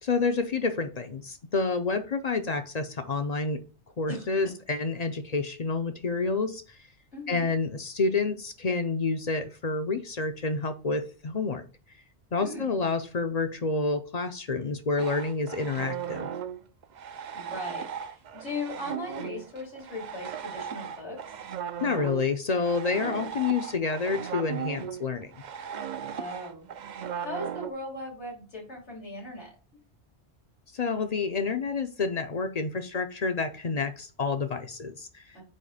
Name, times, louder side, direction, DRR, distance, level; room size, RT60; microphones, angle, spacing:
voice 1, 0.0-3.6 4.0-6.6 7.3-11.6 12.3-16.3 21.8-25.3 30.7-35.2, left 4 dB, 45° left, 8 dB, 0.7 m, -29 dB
voice 2, 7.1-7.5 12.4-12.7 17.3-21.2 26.1-26.7 27.0-29.5 35.3-35.4, left 2 dB, 90° left, -3 dB, 3.4 m, -38 dB
sound 1, 15.0-27.7, right 8 dB, 55° right, 0.6 m, -37 dB
8.6 x 3.1 x 4.9 m, 0.36 s
omnidirectional pair, 1.1 m